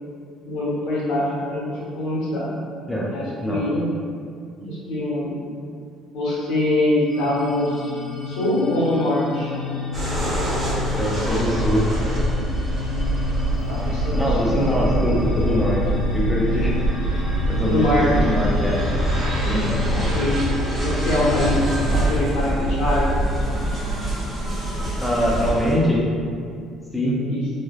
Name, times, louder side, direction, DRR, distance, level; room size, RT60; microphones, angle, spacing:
voice 1, 0.4-1.2 1.5-2.5 3.1-3.9 4.6-5.3 6.1-8.0 8.3-9.5 13.7-14.6 17.6-18.1 19.9-20.5 20.8-21.6 21.9-23.2 27.3-27.4, left 1 dB, 85° left, -7 dB, 0.9 m, -23 dB
sound 1, 7.1-21.6, left 4 dB, 55° left, 0.8 m, -31 dB
sound 2, 9.9-25.7, right 1 dB, 25° right, 1.0 m, -24 dB
voice 2, 11.0-11.9 14.1-15.8 16.1-16.8 17.5-18.8 19.4-19.8 25.0-26.1 26.9-27.2, equal, 5° left, -5 dB, 0.4 m, -23 dB
3.2 x 2.1 x 2.3 m, 2.2 s
cardioid pair, 110°, 0 cm